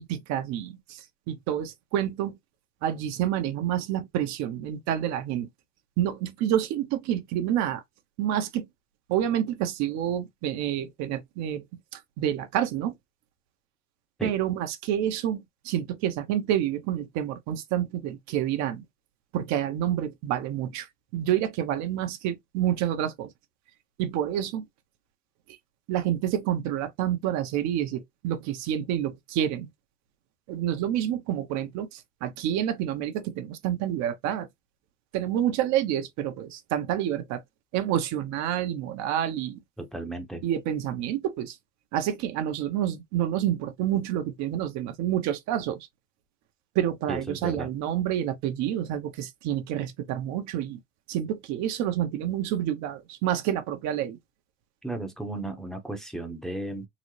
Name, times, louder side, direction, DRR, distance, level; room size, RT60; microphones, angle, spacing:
voice 1, 0.0-2.4 2.8-5.5 6.0-7.8 8.2-8.7 9.1-11.6 11.9-12.9 14.2-18.8 19.3-23.3 24.0-24.6 25.9-29.7 30.5-34.5 35.1-37.4 37.7-39.6 40.4-41.6 41.9-45.8 46.7-50.8 51.1-54.2, right 11 dB, 55° right, 0.8 m, -28 dB
voice 2, 39.8-40.4 47.1-47.7 54.8-56.9, right 1 dB, ahead, 0.8 m, -34 dB
3.9 x 2.0 x 3.2 m
supercardioid pair, 100°, 33 cm